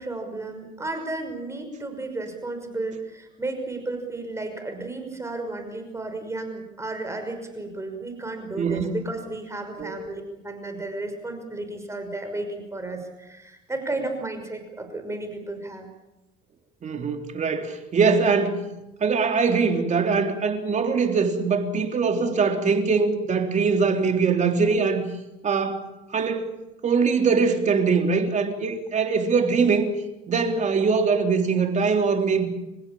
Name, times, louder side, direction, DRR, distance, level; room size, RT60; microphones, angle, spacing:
voice 1, 0.0-15.9, right 2 dB, 15° right, 5.8 m, -33 dB
voice 2, 8.6-9.0 9.8-9.9 16.8-18.7 19.0-25.1 25.4-25.9 26.1-26.5 26.8-29.9 30.3-32.4, right 5 dB, 35° right, 3.6 m, -22 dB
28.5 x 15.5 x 8.7 m
supercardioid pair, 105°, 20 cm